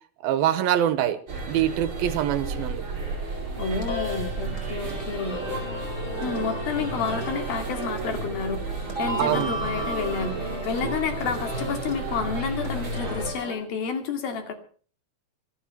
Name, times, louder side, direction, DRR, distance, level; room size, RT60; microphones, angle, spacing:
voice 1, 0.2-2.8 9.2-9.5, right 11 dB, 85° right, 2.8 m, -24 dB
sound 1, 1.3-13.3, right 3 dB, 35° right, 5.5 m, -32 dB
sound 2, 3.1-13.5, left 1 dB, 25° left, 5.3 m, -36 dB
voice 2, 3.6-5.4 6.2-14.5, left 5 dB, 75° left, 4.2 m, -30 dB
25.0 x 11.5 x 4.4 m
omnidirectional pair, 4.2 m